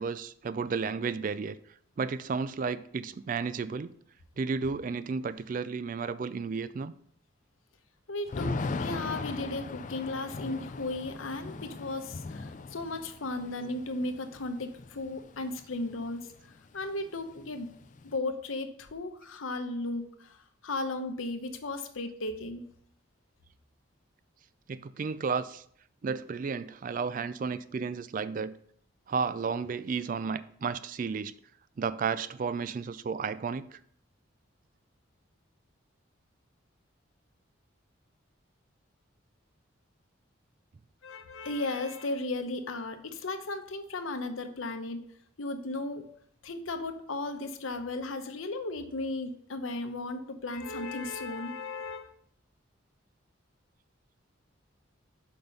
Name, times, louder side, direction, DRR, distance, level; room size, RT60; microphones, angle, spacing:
voice 1, 0.0-1.6 2.0-3.9 4.4-6.9 24.7-25.6 26.0-28.5 29.1-31.3 31.8-33.8, right 5 dB, 40° right, 0.3 m, -32 dB
voice 2, 8.1-8.5 8.8-16.3 16.7-17.7 18.0-20.4 20.6-22.7 41.0-45.0 45.4-46.0 46.4-52.1, left 2 dB, 85° left, 0.9 m, -35 dB
Thunder / Rain, 8.3-16.1 16.4-16.5 16.8-18.2, left 3 dB, 40° left, 0.3 m, -39 dB
6.1 x 5.1 x 5.4 m
head